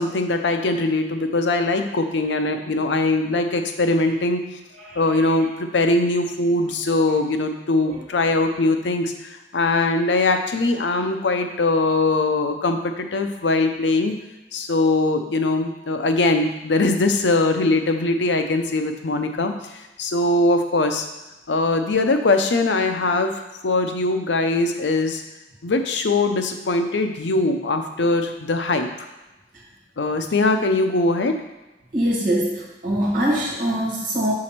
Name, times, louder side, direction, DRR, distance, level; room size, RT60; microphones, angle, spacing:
voice 1, 0.0-4.4 5.0-9.1 9.5-14.1 14.5-19.5 20.0-21.1 21.5-25.2 25.6-28.9 30.0-31.4, left 2 dB, 90° left, 6 dB, 0.6 m, -21 dB
voice 2, 31.9-34.3, right 1 dB, 55° right, -4 dB, 1.9 m, -23 dB
4.8 x 4.1 x 5.9 m, 1.1 s
head